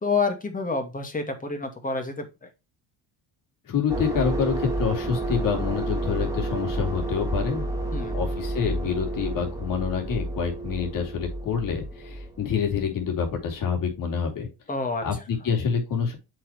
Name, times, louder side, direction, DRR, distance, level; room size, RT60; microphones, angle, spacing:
voice 1, 0.0-2.5 7.9-8.2 14.7-15.2, left 4 dB, 20° left, 5 dB, 2.2 m, -28 dB
voice 2, 3.7-7.7 8.1-14.5 15.0-16.2, left 6 dB, 55° left, 3 dB, 3.7 m, -27 dB
sound 1, 3.9-13.4, right 2 dB, 10° right, 2.0 m, -30 dB
7.6 x 6.1 x 3.3 m, 0.26 s
cardioid pair, 130°, 40 cm